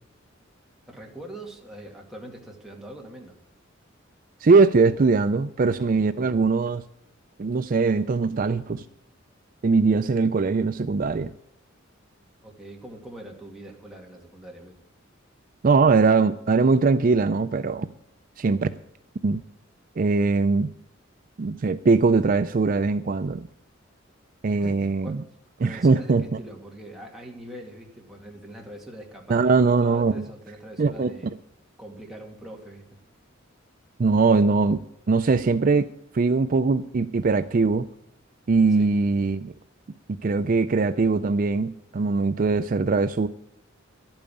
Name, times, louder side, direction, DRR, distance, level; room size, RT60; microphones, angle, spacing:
voice 1, 0.9-3.4 12.4-14.8 24.6-25.3 25.6-31.3 31.8-33.0 38.7-38.9, right 1 dB, ahead, -1 dB, 2.2 m, -42 dB
voice 2, 4.4-6.8 7.4-8.8 9.6-11.3 15.6-17.9 18.4-18.7 19.2-19.4 20.0-20.7 21.4-23.5 24.4-25.2 25.6-26.2 29.3-30.1 30.8-31.1 34.0-34.8 35.1-35.9 36.1-37.9 38.5-39.5 40.1-43.3, right 4 dB, 45° right, 11 dB, 0.4 m, -21 dB
12.0 x 8.8 x 8.5 m, 0.75 s
head